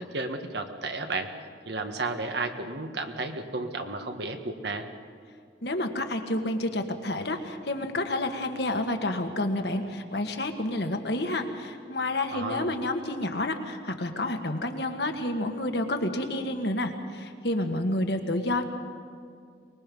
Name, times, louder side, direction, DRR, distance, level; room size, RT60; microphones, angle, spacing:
voice 1, 0.0-1.3 1.6-4.8 12.3-12.7, right 3 dB, 60° right, 6 dB, 1.6 m, -33 dB
voice 2, 5.6-18.7, left 1 dB, 60° left, 5 dB, 1.7 m, -29 dB
24.0 x 21.0 x 5.4 m, 2.3 s
head